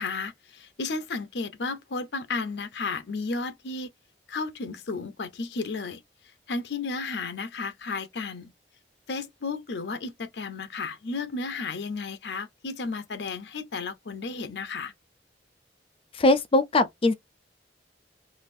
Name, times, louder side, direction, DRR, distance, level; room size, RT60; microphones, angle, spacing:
voice 1, 0.0-3.9 4.3-6.0 6.5-8.5 9.1-14.9, left 4 dB, 70° left, 0.7 m, -33 dB
voice 2, 16.1-17.1, left 2 dB, 30° left, 0.5 m, -21 dB
4.0 x 2.5 x 2.6 m
head